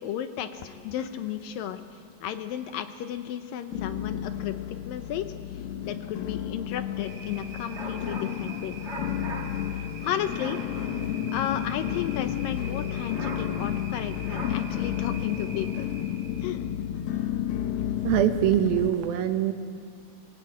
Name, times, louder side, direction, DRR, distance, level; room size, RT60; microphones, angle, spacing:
voice 1, 0.0-1.8 2.2-5.3 5.8-8.7 9.8-10.6 11.3-15.9 16.4-16.7, left 10 dB, 75° left, 9 dB, 2.3 m, -33 dB
sound 1, 0.5-1.5 1.8-2.4 2.9-3.0 3.7-18.9, left 10 dB, 90° left, 2.8 m, -32 dB
sound 2, 7.0-16.4, right 3 dB, 35° right, 1.1 m, -42 dB
voice 2, 18.0-19.5, right 11 dB, 75° right, 8 dB, 2.8 m, -23 dB
26.0 x 18.0 x 8.7 m, 2.3 s
omnidirectional pair, 4.4 m